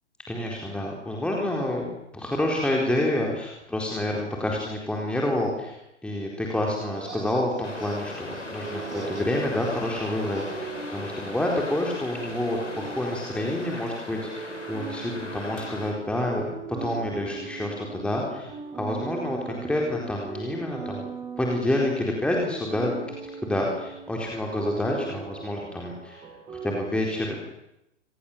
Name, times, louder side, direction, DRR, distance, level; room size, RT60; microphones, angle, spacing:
voice 1, 0.3-1.9 2.1-16.5 16.8-21.0 21.4-23.0 23.4-26.2 26.6-27.5, left 1 dB, 5° left, -1 dB, 4.2 m, -28 dB
sound 1, 6.8-10.6, right 3 dB, 70° right, 6.4 m, -42 dB
sound 2, 7.6-15.9, left 3 dB, 80° left, 7.2 m, -39 dB
sound 3, 8.6-26.8, right 5 dB, 15° right, 4.6 m, -40 dB
30.0 x 25.0 x 7.4 m, 0.86 s
figure-of-eight pair, 115°, 36 cm